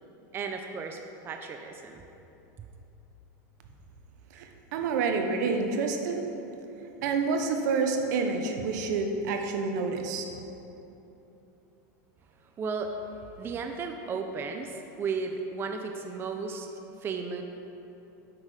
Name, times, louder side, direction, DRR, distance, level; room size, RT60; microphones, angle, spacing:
voice 1, 0.3-2.0 12.4-13.0 13.4-16.7 17.0-17.4, right 5 dB, 25° right, 5 dB, 0.5 m, -34 dB
voice 2, 4.3-6.3 7.0-10.3, right 4 dB, 70° right, 5 dB, 0.9 m, -28 dB
8.6 x 6.3 x 4.9 m, 3.0 s
supercardioid pair, 135°, 10 cm